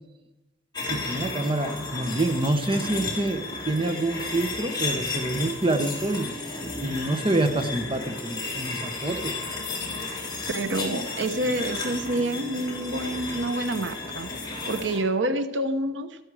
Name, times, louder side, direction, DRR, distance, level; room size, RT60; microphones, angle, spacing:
sound 1, 0.7-15.0, left 3 dB, 20° left, 3.7 m, -33 dB
voice 1, 0.9-9.4, right 2 dB, 30° right, 6 dB, 1.1 m, -27 dB
voice 2, 10.5-14.3 14.6-16.2, right 1 dB, 70° right, 10 dB, 1.0 m, -28 dB
14.5 x 13.0 x 4.8 m, 0.98 s
head